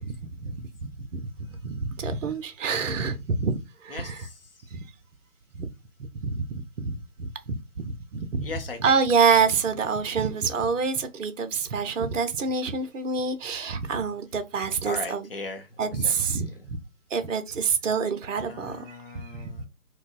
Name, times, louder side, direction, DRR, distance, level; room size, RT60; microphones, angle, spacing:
voice 1, 0.0-4.2 4.7-4.9 5.5-5.7 6.1-8.5 8.8-15.3 15.8-16.8 17.1-19.7, right 5 dB, 55° right, 0.6 m, -27 dB
voice 2, 3.9-4.7 8.4-9.0 14.8-16.7 18.4-19.7, left 3 dB, 40° left, 0.6 m, -39 dB
4.5 x 2.0 x 2.4 m
figure-of-eight pair, 145°, 46 cm